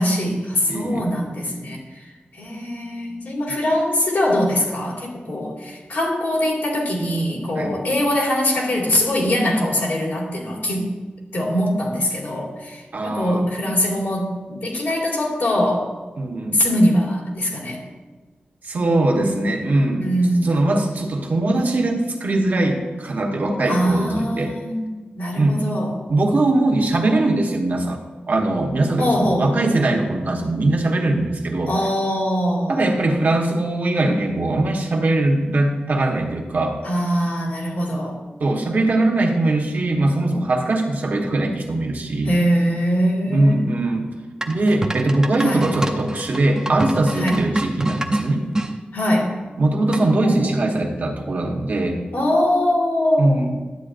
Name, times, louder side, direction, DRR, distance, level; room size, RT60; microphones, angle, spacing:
voice 1, 0.0-2.0 2.3-10.9 11.3-15.9 16.5-17.8 20.0-20.5 23.7-26.0 29.0-29.6 31.6-33.0 36.8-38.2 42.2-43.8 45.4-45.6 47.1-47.4 48.9-49.3 50.2-50.6 52.1-53.4, equal, 85° left, -4 dB, 2.4 m, -22 dB
voice 2, 0.7-1.0 7.6-7.7 12.9-13.5 16.2-16.6 18.6-20.1 20.4-24.5 25.4-25.6 26.1-28.0 28.3-31.7 32.7-36.8 38.4-42.3 43.3-44.1 44.5-48.5 49.6-52.0 53.2-53.5, right 2 dB, 60° right, 0 dB, 1.2 m, -21 dB
sound 1, 44.4-48.7 49.9-50.3, right 1 dB, 20° right, 0.6 m, -26 dB
11.5 x 8.4 x 2.6 m, 1.3 s
wide cardioid pair, 135°, 3 cm